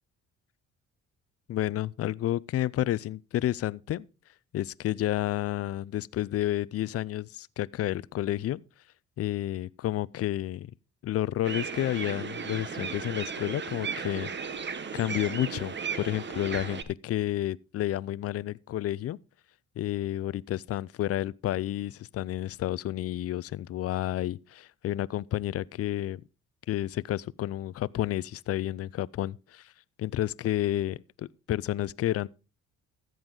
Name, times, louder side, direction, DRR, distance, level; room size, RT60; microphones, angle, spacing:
voice 1, 1.5-4.0 4.5-8.6 9.2-10.7 11.0-14.3 14.9-19.2 19.8-26.2 26.7-29.7 30.0-32.3, left 13 dB, 50° left, 0.5 m, -30 dB
sound 1, 11.4-16.8, right 6 dB, 35° right, 1.0 m, -35 dB
14.0 x 7.9 x 3.8 m
cardioid pair, 90°, 30 cm